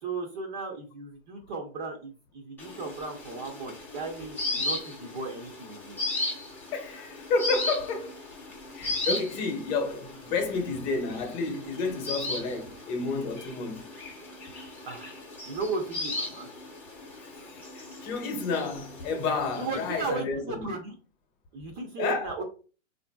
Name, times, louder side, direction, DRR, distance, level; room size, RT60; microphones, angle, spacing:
voice 1, 0.0-6.0 14.9-15.1 15.4-16.5 19.5-20.9 21.5-22.4, right 3 dB, 40° right, 0.7 m, -35 dB
sound 1, 2.6-20.1, left 2 dB, 5° left, 0.6 m, -37 dB
voice 2, 6.7-8.1 8.7-13.9 17.5-20.7 22.0-22.4, left 4 dB, 35° left, 0.8 m, -30 dB
3.7 x 2.6 x 2.2 m
hypercardioid pair, 145°, 39 cm